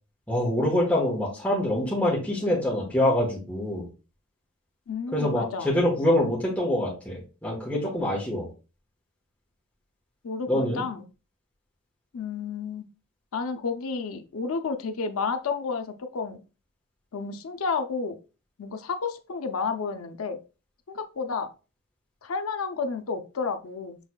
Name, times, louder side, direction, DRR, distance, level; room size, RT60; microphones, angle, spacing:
voice 1, 0.3-3.9 5.1-8.5 10.5-10.8, left 1 dB, 5° left, -6 dB, 1.1 m, -25 dB
voice 2, 4.9-5.7 10.2-11.0 12.1-12.8 13.3-16.4 17.1-18.2 18.6-20.4 20.9-21.5 22.2-24.0, left 5 dB, 85° left, 6 dB, 0.5 m, -31 dB
6.2 x 3.1 x 2.2 m, 0.33 s
head